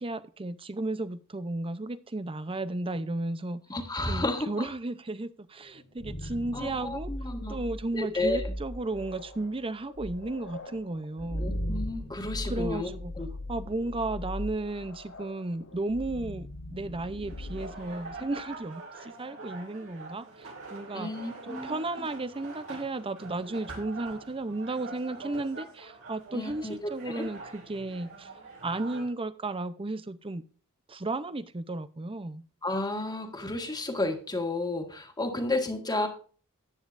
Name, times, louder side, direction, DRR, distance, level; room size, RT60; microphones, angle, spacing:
voice 1, 0.0-3.6 4.0-7.1 7.5-11.5 12.5-13.1 13.5-21.1 21.4-28.3 28.6-30.4 30.9-32.4, right 2 dB, 25° right, 0.6 m, -34 dB
voice 2, 3.7-4.7 6.5-7.6 7.9-8.5 11.4-12.9 13.2-13.3 20.9-21.8 26.3-27.3 32.6-36.1, left 2 dB, 20° left, 1.8 m, -32 dB
sound 1, 5.7-18.6, left 1 dB, 80° left, 3.3 m, -39 dB
sound 2, 17.3-29.1, right 3 dB, 65° right, 4.8 m, -44 dB
14.5 x 9.6 x 2.6 m
head